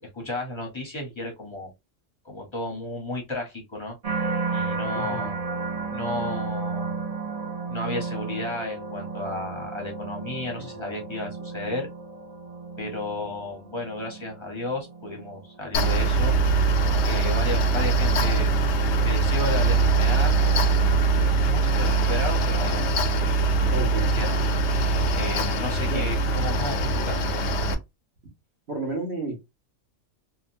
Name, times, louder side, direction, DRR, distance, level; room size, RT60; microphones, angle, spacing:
voice 1, 0.0-1.7 2.2-4.0 4.5-5.4 5.9-7.0 7.7-11.9 12.8-16.4 16.8-18.5 19.0-20.3 21.4-23.4 23.9-24.4 25.1-27.8, left 2 dB, 25° left, 0.8 m, -33 dB
sound 1, 4.0-19.2 19.7-20.2, right 4 dB, 40° right, 0.6 m, -34 dB
voice 2, 5.0-5.3 10.6-10.7 23.7-24.1 25.9-26.0 28.7-29.4, right 2 dB, 60° right, 1.2 m, -31 dB
Mechanical fan, 15.7-27.7, right 3 dB, 70° left, 0.8 m, -22 dB
2.8 x 2.2 x 2.6 m
omnidirectional pair, 1.3 m